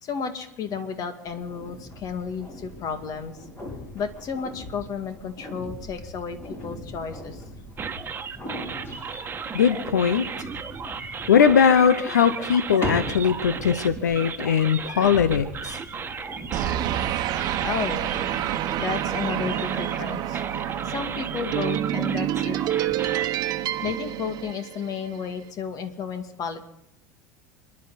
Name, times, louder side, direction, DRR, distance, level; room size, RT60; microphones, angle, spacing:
voice 1, 0.0-3.3 3.9-7.4 17.6-18.1 18.8-20.4 20.8-22.6 23.8-26.6, left 6 dB, 45° left, 7 dB, 2.2 m, -32 dB
sound 1, 1.2-17.2, left 1 dB, 30° left, 6.0 m, -39 dB
sound 2, 7.8-23.3, right 6 dB, 25° right, 1.5 m, -35 dB
voice 2, 9.5-10.5 11.3-15.8, left 7 dB, 85° left, 13 dB, 0.8 m, -20 dB
sound 3, 16.5-25.1, right 12 dB, 50° right, 1.1 m, -28 dB
29.5 x 11.0 x 4.1 m, 0.84 s
hypercardioid pair, 80°, 9 cm